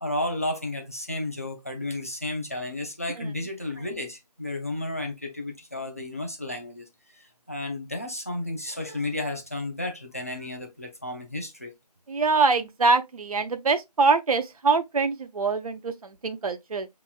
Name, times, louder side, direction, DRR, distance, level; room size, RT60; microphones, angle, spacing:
voice 1, 0.0-6.8 7.2-11.7, left 1 dB, 20° left, 0.5 m, -32 dB
voice 2, 12.1-16.9, right 4 dB, 55° right, 0.5 m, -24 dB
5.8 x 2.9 x 2.2 m
figure-of-eight pair, 165°, 21 cm